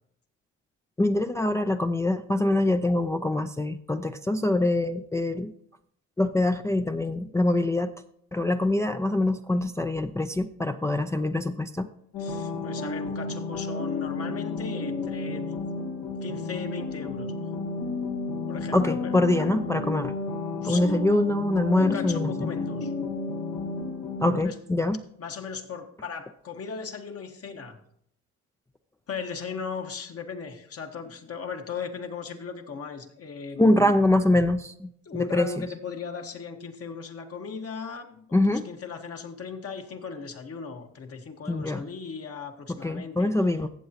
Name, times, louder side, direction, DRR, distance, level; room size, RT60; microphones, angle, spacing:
voice 1, 1.0-5.5 6.2-7.9 8.3-11.9 18.7-20.1 20.6-22.5 24.2-25.0 33.6-35.5 38.3-38.7 41.5-41.8 42.7-43.7, left 1 dB, 10° left, 6 dB, 0.4 m, -24 dB
sound 1, 12.1-24.4, left 3 dB, 85° left, 2.3 m, -32 dB
voice 2, 12.2-15.6 16.2-17.3 18.5-19.5 20.6-21.1 21.8-22.9 24.4-24.6 25.2-27.8 29.1-33.9 35.0-43.3, left 5 dB, 50° left, 4 dB, 1.4 m, -37 dB
14.5 x 7.7 x 2.8 m, 0.69 s
cardioid pair, 90°, 30 cm